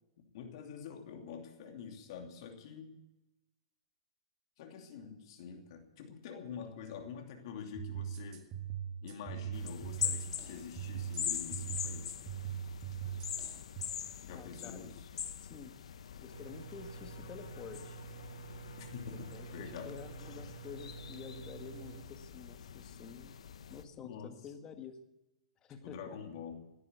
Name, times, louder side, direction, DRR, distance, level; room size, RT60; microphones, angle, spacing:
voice 1, 0.3-3.0 4.6-8.5 9.0-12.1 14.2-15.1 18.8-20.0 23.9-24.3 25.8-26.6, left 6 dB, 55° left, 3 dB, 2.7 m, -46 dB
sound 1, 7.8-13.8, right 9 dB, 30° right, 2.2 m, -41 dB
sound 2, 9.5-23.8, left 8 dB, 80° left, 0.9 m, -43 dB
voice 2, 14.3-14.9 15.4-15.7 16.2-18.0 19.0-23.3 23.7-25.0 25.6-26.2, left 6 dB, 20° left, 7 dB, 1.6 m, -49 dB
sound 3, 16.3-22.0, right 8 dB, 65° right, 2.1 m, -50 dB
17.5 x 9.8 x 8.1 m, 0.95 s
hypercardioid pair, 145°, 3 cm